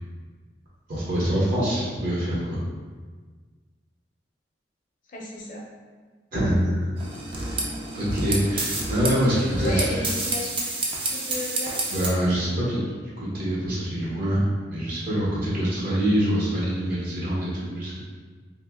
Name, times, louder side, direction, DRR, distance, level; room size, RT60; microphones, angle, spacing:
voice 1, 0.9-2.6 6.3-6.9 7.4-7.6 7.9-9.8 11.9-12.8 13.2-14.4 14.7-18.0, equal, 50° right, -8 dB, 0.8 m, -25 dB
voice 2, 5.1-5.6 9.5-10.6 11.1-11.9, left 1 dB, 50° left, -2 dB, 0.6 m, -33 dB
sound 1, 7.0-12.1, right 2 dB, 30° right, 0.4 m, -29 dB
2.9 x 2.2 x 3.5 m, 1.5 s
head